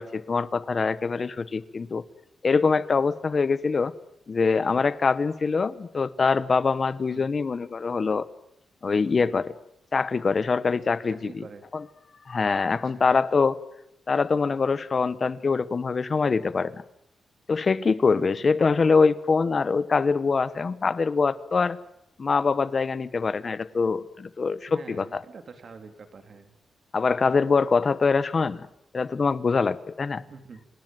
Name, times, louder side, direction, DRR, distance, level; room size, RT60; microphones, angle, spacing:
voice 1, 0.0-2.0 2.4-3.9 4.3-8.3 8.8-9.5 9.9-11.4 11.7-11.8 12.3-13.6 14.1-16.8 17.5-21.8 22.2-25.2 26.9-28.7 28.9-30.2, left 4 dB, 35° left, 16 dB, 1.0 m, -24 dB
voice 2, 11.1-11.6 12.7-13.1 18.0-18.4 24.7-26.5 30.3-30.6, right 5 dB, 45° right, 7 dB, 3.2 m, -45 dB
27.5 x 19.0 x 9.1 m, 0.79 s
wide cardioid pair, 165°, 0 cm